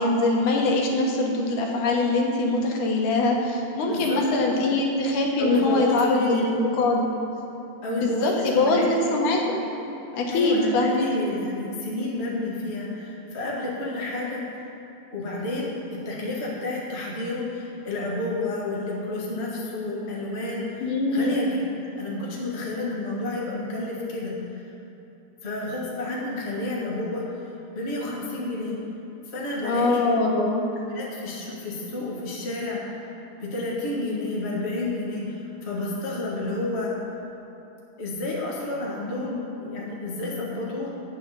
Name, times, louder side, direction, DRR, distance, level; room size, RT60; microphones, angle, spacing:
voice 1, 0.0-7.0 7.9-9.6 10.1-11.1 20.8-21.4 29.6-30.6, left 2 dB, 90° left, 0 dB, 2.7 m, -23 dB
voice 2, 3.9-4.2 5.4-6.5 7.8-9.2 10.3-14.7 15.1-21.6 21.9-24.6 25.4-27.2 27.7-28.8 29.3-30.1 30.9-32.8 33.4-36.9 38.0-40.9, left 2 dB, 30° left, -4 dB, 1.3 m, -30 dB
9.5 x 6.6 x 6.8 m, 2.9 s
omnidirectional pair, 3.5 m